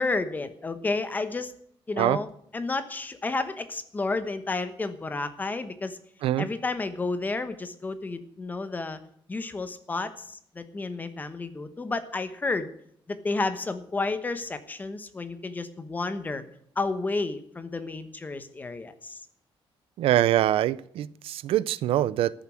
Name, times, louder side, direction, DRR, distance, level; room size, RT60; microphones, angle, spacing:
voice 1, 0.0-1.5 1.9-2.3 2.5-6.0 6.4-9.0 9.3-12.7 13.1-16.4 16.8-19.2, left 3 dB, 20° left, 11 dB, 1.0 m, -31 dB
voice 2, 20.0-22.3, right 12 dB, 80° right, 20 dB, 0.5 m, -24 dB
13.5 x 7.2 x 7.6 m, 0.67 s
cardioid pair, 165°, 9 cm